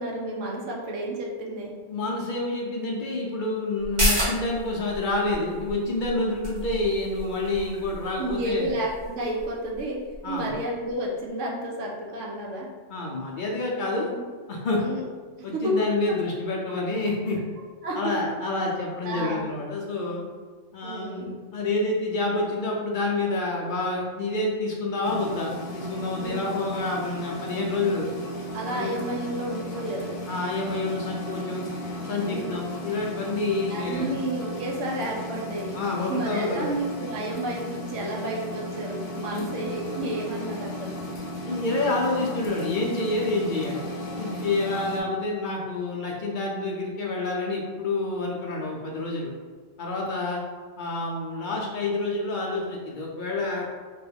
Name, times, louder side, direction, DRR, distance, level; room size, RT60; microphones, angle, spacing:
voice 1, 0.0-1.7 8.2-10.0 10.3-12.7 14.1-14.2 14.8-15.0 15.5-15.7 17.8-18.1 19.0-19.4 20.8-21.3 26.2-26.5 28.5-30.1 32.2-32.5 33.7-35.8 36.1-41.0, right 1 dB, 75° right, -1 dB, 1.0 m, -31 dB
voice 2, 1.9-8.7 10.2-10.5 12.9-14.1 14.5-14.8 15.4-17.4 17.9-20.2 20.7-28.1 28.7-28.9 30.3-31.7 32.0-34.1 35.7-36.7 39.3-39.5 41.4-43.8 44.2-49.3 49.8-50.4 50.8-53.7, left 2 dB, 60° left, -2 dB, 0.5 m, -28 dB
sound 1, 3.8-10.9 11.3-11.4, equal, 40° right, 1.0 m, -32 dB
sound 2, 25.0-45.0, equal, 85° left, 1.0 m, -35 dB
2.9 x 2.2 x 3.3 m, 1.5 s
omnidirectional pair, 1.3 m